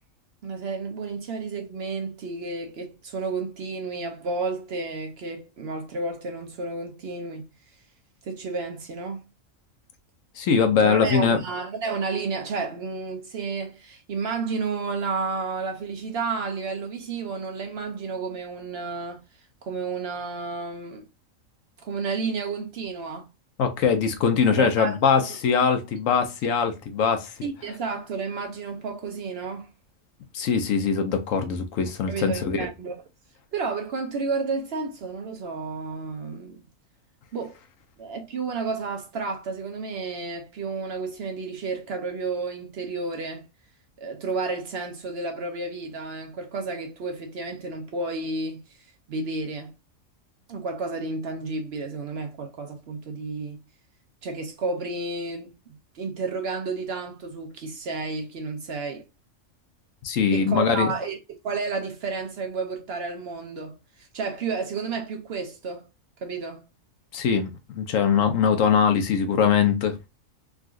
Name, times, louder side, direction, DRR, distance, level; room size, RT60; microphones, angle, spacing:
voice 1, 0.4-7.5 8.2-9.2 10.8-19.2 19.6-21.0 21.8-23.3 24.6-25.0 27.4-29.7 32.1-33.0 33.5-36.6 37.3-37.6 38.0-43.5 44.0-49.7 50.5-53.6 54.2-59.1 60.3-61.2 61.4-65.9 66.2-66.6, right 4 dB, 60° right, 0.7 m, -31 dB
voice 2, 10.4-11.4 23.6-27.3 30.3-32.7 60.0-60.9 67.1-70.1, left 6 dB, 75° left, 1.0 m, -22 dB
3.6 x 2.4 x 2.3 m
omnidirectional pair, 1.4 m